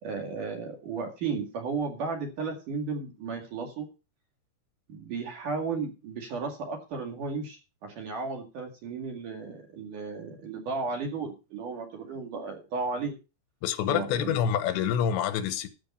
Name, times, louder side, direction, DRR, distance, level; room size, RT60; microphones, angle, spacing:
voice 1, 0.0-3.9 4.9-13.1 13.9-14.4, right 4 dB, 55° right, 3.4 m, -34 dB
voice 2, 13.6-15.7, left 9 dB, 90° left, 3.2 m, -27 dB
13.0 x 7.0 x 5.7 m
omnidirectional pair, 5.1 m